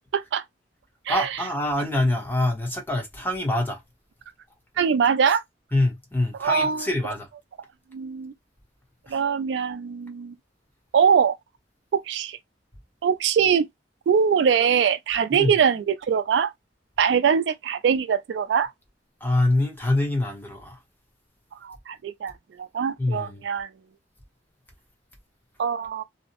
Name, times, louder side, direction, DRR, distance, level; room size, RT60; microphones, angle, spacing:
voice 1, 0.1-0.4 1.1-1.3 4.8-5.4 6.4-6.8 7.9-8.3 9.1-10.3 10.9-11.4 11.9-12.4 13.0-13.7 14.1-16.5 17.0-18.7 21.6-22.3 22.6-23.7 25.6-26.0, right 7 dB, 70° right, 0.3 m, -22 dB
voice 2, 1.1-3.8 5.7-7.3 9.1-9.2 15.3-15.5 19.2-20.8 23.0-23.4, left 1 dB, 10° left, 0.8 m, -25 dB
2.7 x 2.0 x 2.8 m
head